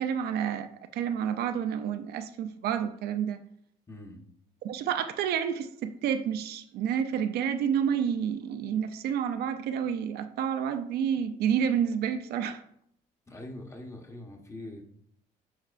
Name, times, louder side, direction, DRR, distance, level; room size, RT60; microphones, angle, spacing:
voice 1, 0.0-3.4 4.6-12.6, right 8 dB, 70° right, 8 dB, 0.5 m, -29 dB
voice 2, 3.9-4.2 13.3-14.9, left 1 dB, 15° left, 3 dB, 1.0 m, -43 dB
8.8 x 4.2 x 2.5 m, 0.69 s
cardioid pair, 110°, 17 cm